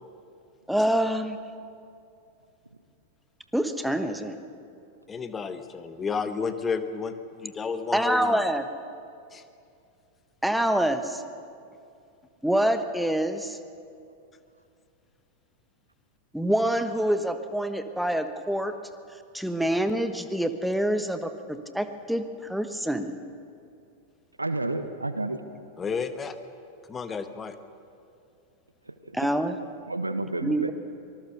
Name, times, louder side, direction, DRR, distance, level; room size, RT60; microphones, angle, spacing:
voice 1, 0.7-1.4 3.5-4.4 7.9-8.6 10.4-11.2 12.4-13.6 16.3-18.7 19.3-23.2 29.1-29.6 30.4-30.7, right 1 dB, ahead, 9 dB, 1.2 m, -26 dB
voice 2, 5.1-8.4 9.3-9.4 25.8-26.3 26.9-27.6, left 5 dB, 20° left, 10 dB, 1.2 m, -31 dB
voice 3, 24.4-25.4 28.9-29.2 29.9-30.7, right 2 dB, 85° right, 10 dB, 1.2 m, -30 dB
25.0 x 19.5 x 6.6 m, 2.5 s
figure-of-eight pair, 90°, 0 cm